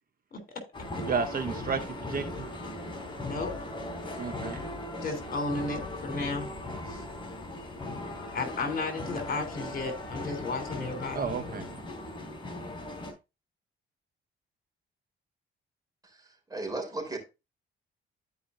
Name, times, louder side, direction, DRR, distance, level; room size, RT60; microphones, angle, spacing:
voice 1, 0.3-0.6 3.2-3.5 4.9-6.5 6.9-7.0 8.3-11.3, left 3 dB, 50° left, 3.4 m, -34 dB
sound 1, 0.7-13.1, left 1 dB, 25° left, 3.4 m, -38 dB
voice 2, 1.1-2.5 4.2-4.6 11.1-11.7, right 5 dB, 45° right, 0.9 m, -32 dB
voice 3, 16.0-17.2, right 2 dB, 20° right, 3.7 m, -36 dB
13.5 x 5.1 x 2.6 m
cardioid pair, 90°, 20 cm